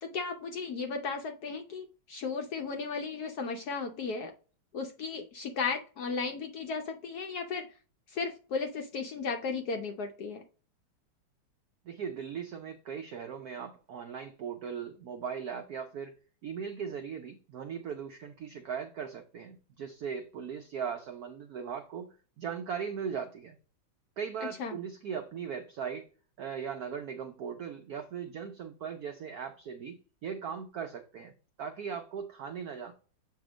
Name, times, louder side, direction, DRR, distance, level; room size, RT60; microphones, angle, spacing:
voice 1, 0.0-4.3 4.7-7.7 8.1-10.4 24.4-24.8, left 4 dB, 70° left, 0.9 m, -35 dB
voice 2, 11.8-16.1 16.4-23.6 24.2-26.1 26.4-31.3 31.6-32.9, right 7 dB, 80° right, 0.8 m, -39 dB
7.3 x 2.8 x 4.9 m
omnidirectional pair, 2.2 m